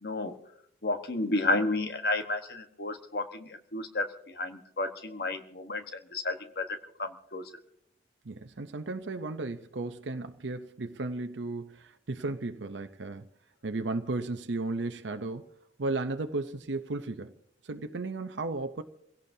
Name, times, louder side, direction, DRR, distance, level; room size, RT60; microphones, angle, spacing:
voice 1, 0.0-0.4 0.8-5.8 6.1-6.7 7.0-7.4, left 2 dB, 55° left, 1.3 m, -31 dB
voice 2, 8.2-13.3 13.6-15.5 15.8-17.3 17.6-18.8, right 2 dB, 85° right, 0.7 m, -34 dB
27.0 x 17.0 x 2.8 m
head